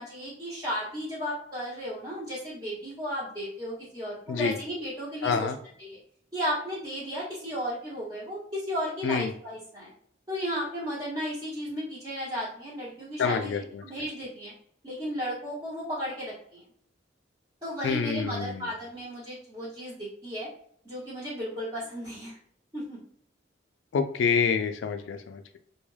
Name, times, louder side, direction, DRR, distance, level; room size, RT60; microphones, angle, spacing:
voice 1, 0.0-5.5 5.8-6.0 6.3-9.9 10.3-14.5 14.8-16.6 17.6-20.5 20.8-22.4 22.7-23.0, equal, 25° right, -11 dB, 0.9 m, -34 dB
voice 2, 5.2-5.6 9.0-9.3 13.2-13.8 17.8-18.6 23.9-25.6, left 6 dB, 85° left, 7 dB, 0.3 m, -27 dB
2.2 x 2.2 x 3.2 m, 0.65 s
head